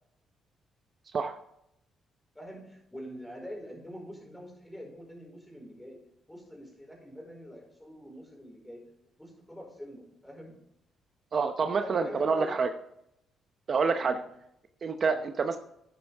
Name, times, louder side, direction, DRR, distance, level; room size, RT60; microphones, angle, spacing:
voice 1, 2.3-6.0 6.3-8.8 9.2-10.6 11.8-12.5 14.0-14.2 15.0-15.3, equal, 5° left, 0 dB, 4.7 m, -45 dB
voice 2, 11.3-12.7 13.7-14.2 14.8-15.6, right 5 dB, 45° right, 7 dB, 0.8 m, -27 dB
11.5 x 9.8 x 3.5 m, 0.78 s
cardioid pair, 90°, 0 cm